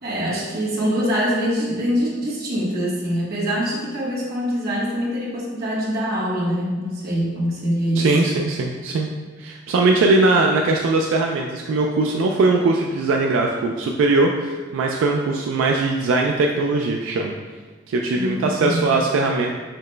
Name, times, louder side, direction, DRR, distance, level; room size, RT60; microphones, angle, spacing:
voice 1, 0.0-8.1 18.1-18.8, equal, 55° right, -5 dB, 1.0 m, -24 dB
voice 2, 8.0-9.1 9.4-17.3 17.9-19.5, right 3 dB, 80° right, 1 dB, 0.3 m, -20 dB
5.8 x 2.2 x 3.2 m, 1.4 s
head